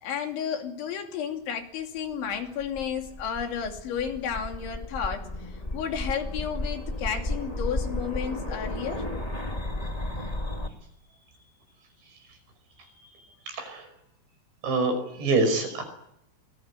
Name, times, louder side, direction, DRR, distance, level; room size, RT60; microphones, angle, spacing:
voice 1, 0.0-9.0, left 7 dB, 75° left, 4 dB, 5.1 m, -32 dB
sound 1, 2.3-10.7, left 1 dB, 35° left, 0.6 m, -33 dB
voice 2, 13.5-13.8 14.6-15.8, right 3 dB, 65° right, 7 dB, 7.6 m, -25 dB
26.5 x 21.0 x 9.8 m, 0.79 s
omnidirectional pair, 5.4 m